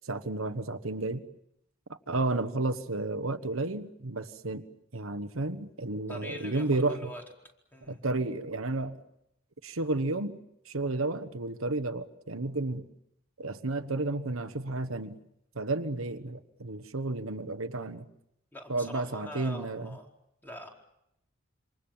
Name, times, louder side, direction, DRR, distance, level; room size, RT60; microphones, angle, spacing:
voice 1, 0.0-1.2 2.1-7.1 7.9-9.0 9.6-10.4 10.6-12.9 13.4-15.2 15.5-18.1 18.7-20.0, right 2 dB, 80° right, 9 dB, 1.3 m, -32 dB
voice 2, 6.1-7.2 7.7-8.0 18.5-20.1 20.4-20.7, equal, 10° left, 1 dB, 4.5 m, -43 dB
27.5 x 26.0 x 7.4 m, 0.80 s
head